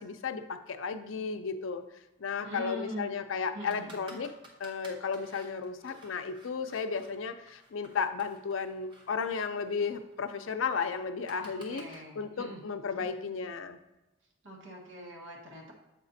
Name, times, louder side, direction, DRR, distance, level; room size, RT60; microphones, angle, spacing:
voice 1, 0.0-1.8 2.2-4.3 4.6-13.8, left 5 dB, 85° left, 9 dB, 0.5 m, -34 dB
voice 2, 2.4-3.1 3.5-4.0 11.4-12.6 14.4-15.7, equal, 80° right, -1 dB, 1.4 m, -42 dB
sound 1, 3.7-7.1 7.5-12.0, right 1 dB, 25° right, 0.9 m, -54 dB
7.4 x 5.0 x 2.7 m, 0.97 s
head